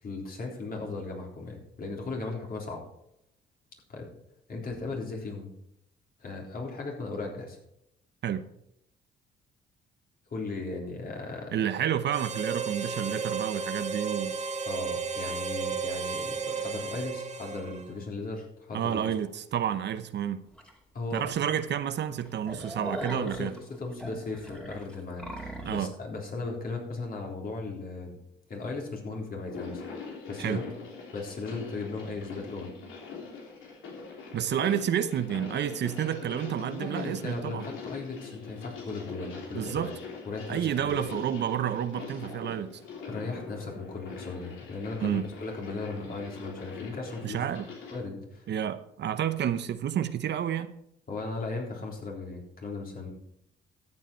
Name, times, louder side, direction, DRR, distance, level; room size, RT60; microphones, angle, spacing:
voice 1, 0.0-2.8 3.9-4.1 4.5-5.5 6.2-7.6 10.3-11.5 14.7-19.0 20.9-21.3 23.1-28.2 28.5-29.8 30.3-30.6 31.1-32.7 36.6-39.9 40.3-41.0 43.1-47.4 47.9-48.5 51.1-53.1, left 3 dB, 50° left, 3.7 m, -37 dB
voice 2, 11.5-14.4 18.7-20.4 21.1-23.6 25.6-25.9 30.4-30.6 34.3-37.7 39.5-39.9 40.5-42.8 45.0-45.3 47.2-47.7 48.5-50.7, right 9 dB, 60° right, 0.8 m, -30 dB
Harmonica, 12.1-18.0, right 5 dB, 35° right, 1.2 m, -33 dB
sound 1, 20.6-20.7 21.2-21.3 21.6-21.7 22.1-25.9, equal, 5° left, 2.5 m, -40 dB
sound 2, 29.4-48.0, left 5 dB, 85° left, 3.2 m, -43 dB
13.0 x 7.9 x 4.4 m
cardioid pair, 90°, 20 cm